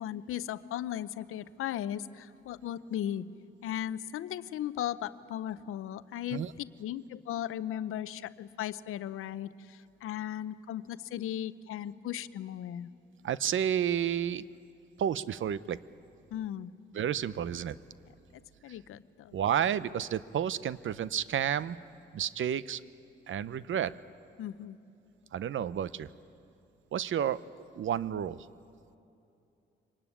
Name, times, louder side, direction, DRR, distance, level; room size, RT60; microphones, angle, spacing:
voice 1, 0.0-3.3 3.6-6.4 6.8-12.9 16.3-16.8 18.3-19.3 24.4-24.8, left 11 dB, 85° left, 15 dB, 0.7 m, -37 dB
voice 2, 13.2-14.4 15.0-15.8 16.9-17.8 19.3-21.8 22.1-22.8 23.3-23.9 25.3-26.1 26.9-27.4 27.7-28.4, right 9 dB, 70° right, 17 dB, 0.7 m, -31 dB
24.5 x 19.0 x 10.0 m, 2.7 s
supercardioid pair, 55°, 21 cm